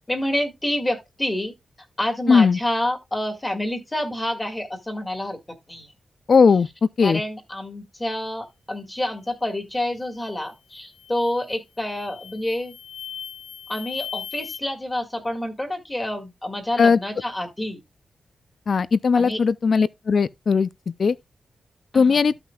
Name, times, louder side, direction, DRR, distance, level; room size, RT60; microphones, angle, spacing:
voice 1, 0.1-1.5 2.0-5.4 5.7-5.9 7.0-12.7 13.7-17.8 19.1-19.4 21.9-22.4, left 1 dB, 15° left, 1.9 m, -28 dB
voice 2, 2.3-2.6 6.3-6.7 7.0-7.2 16.8-17.0 18.7-20.7 21.0-21.1 21.9-22.3, left 5 dB, 45° left, 0.5 m, -18 dB
sound 1, 10.2-10.5 10.9-11.4 11.9-14.6, left 8 dB, 85° left, 0.7 m, -38 dB
14.0 x 5.9 x 2.4 m
wide cardioid pair, 160°, 0 cm